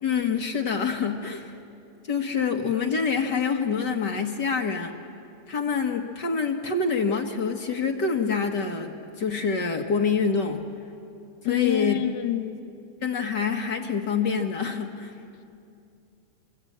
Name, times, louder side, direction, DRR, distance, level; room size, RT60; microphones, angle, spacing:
voice 1, 0.0-1.6 2.1-4.9 5.5-10.6 11.4-12.0 13.0-15.1, left 5 dB, 50° left, 4 dB, 1.4 m, -26 dB
voice 2, 11.5-12.6, left 12 dB, 80° left, 4 dB, 2.6 m, -26 dB
25.5 x 24.5 x 8.6 m, 2.5 s
omnidirectional pair, 3.3 m